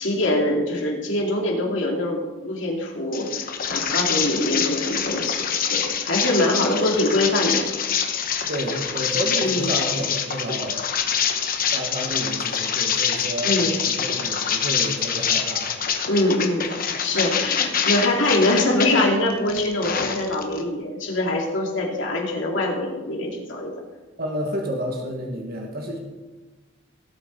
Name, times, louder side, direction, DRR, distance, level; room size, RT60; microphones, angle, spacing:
voice 1, 0.0-7.6 9.4-9.7 13.4-13.8 16.1-16.7 17.0-23.7, left 1 dB, 70° left, -1 dB, 2.6 m, -23 dB
sound 1, 3.1-18.9 19.3-20.6, left 7 dB, 45° left, 1.1 m, -25 dB
voice 2, 8.5-10.8 11.7-13.5 13.8-15.7 24.2-26.0, equal, 50° right, 0 dB, 1.8 m, -30 dB
17.5 x 8.2 x 4.1 m, 1.2 s
head